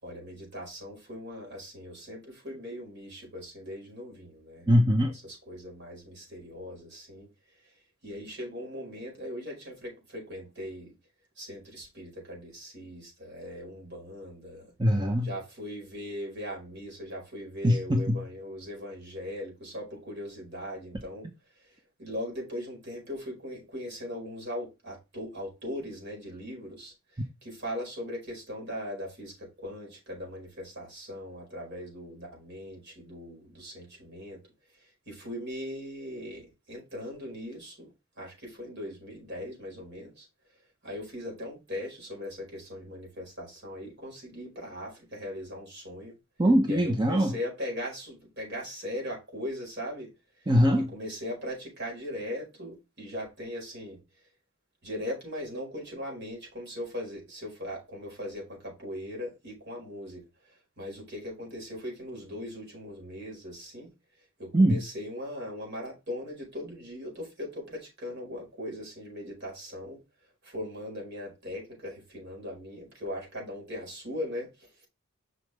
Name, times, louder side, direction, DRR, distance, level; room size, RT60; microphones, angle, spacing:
voice 1, 0.0-4.7 5.1-7.3 8.0-10.9 11.4-14.7 15.2-21.3 21.6-21.7 22.0-34.4 34.7-40.3 40.8-46.2 46.7-50.1 50.4-50.5 50.8-54.0 54.8-63.9 64.4-70.0 70.4-74.9, left 1 dB, 55° right, 4.7 m, -39 dB
voice 2, 4.7-5.1 14.8-15.3 17.6-18.2 46.4-47.3 50.5-50.9 64.5-64.8, equal, 20° right, 0.8 m, -22 dB
6.3 x 5.6 x 3.3 m
head